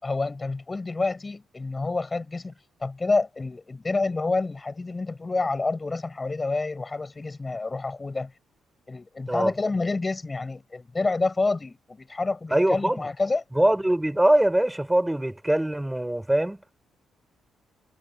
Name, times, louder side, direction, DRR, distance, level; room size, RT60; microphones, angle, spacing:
voice 1, 0.0-2.5 2.8-8.3 8.9-13.4, left 3 dB, 20° left, 4.9 m, -28 dB
voice 2, 12.5-13.1 13.5-16.6, right 1 dB, 5° right, 5.1 m, -22 dB
cardioid pair, 125°, 0 cm